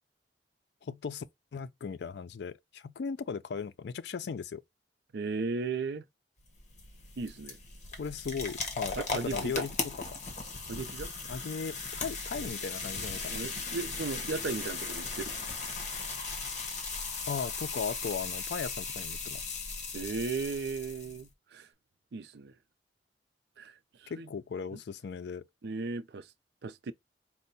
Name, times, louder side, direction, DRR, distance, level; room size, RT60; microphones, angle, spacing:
voice 1, 0.8-1.2 1.5-4.6 8.0-10.2 11.3-13.4 17.3-19.6 24.1-25.4, left 5 dB, 70° left, 0.4 m, -37 dB
voice 2, 5.1-6.0 7.2-7.6 9.0-9.6 10.7-11.1 13.1-15.6 19.9-21.7 22.1-22.5 23.6-24.3 24.7-24.8 25.6-26.3 26.6-26.9, right 4 dB, 65° right, 0.5 m, -36 dB
sound 1, 6.4-21.3, left 4 dB, 45° left, 1.1 m, -37 dB
4.5 x 2.1 x 4.0 m
head